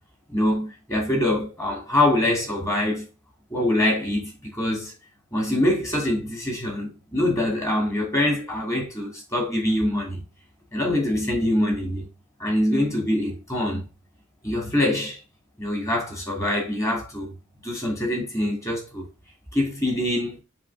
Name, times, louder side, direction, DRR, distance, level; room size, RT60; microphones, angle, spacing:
voice 1, 0.3-3.1 3.5-4.9 5.3-10.2 10.7-12.1 12.4-13.9 14.4-15.2 15.6-17.3 17.6-19.1 19.5-20.4, left 1 dB, 15° left, 2.8 m, -24 dB
7.4 x 3.3 x 6.2 m
head